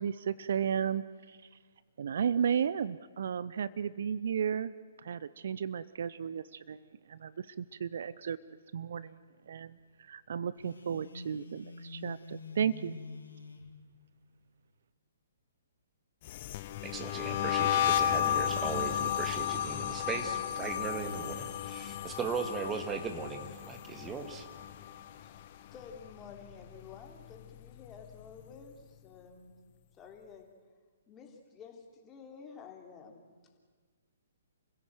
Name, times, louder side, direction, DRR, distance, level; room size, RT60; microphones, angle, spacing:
voice 1, 0.0-1.4 2.0-4.7 5.0-8.4 8.7-9.2 9.5-13.0, right 7 dB, 60° right, 18 dB, 0.6 m, -34 dB
Telephone, 10.6-13.7, left 3 dB, 75° left, 3.2 m, -46 dB
sound 1, 16.2-25.4 25.7-26.1 26.5-28.0, left 10 dB, 40° left, 1.0 m, -33 dB
voice 2, 16.8-24.5, right 5 dB, 15° right, 6 dB, 2.1 m, -38 dB
voice 3, 25.2-29.5 29.9-30.5 31.1-33.3, left 6 dB, 20° left, 2 dB, 3.4 m, -51 dB
30.0 x 16.0 x 7.8 m, 1.5 s
figure-of-eight pair, 125°, 0 cm